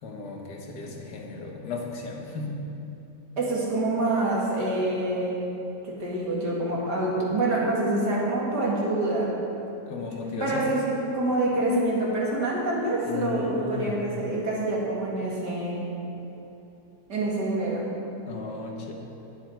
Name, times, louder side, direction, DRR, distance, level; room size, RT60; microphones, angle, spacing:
voice 1, 0.0-2.6 9.9-10.6 13.0-14.0 18.3-18.9, left 4 dB, 75° left, 0 dB, 1.9 m, -35 dB
voice 2, 3.4-5.4 5.8-9.4 10.4-15.8 17.1-17.9, right 2 dB, 75° right, -5 dB, 2.8 m, -26 dB
19.5 x 6.5 x 4.6 m, 3.0 s
omnidirectional pair, 1.8 m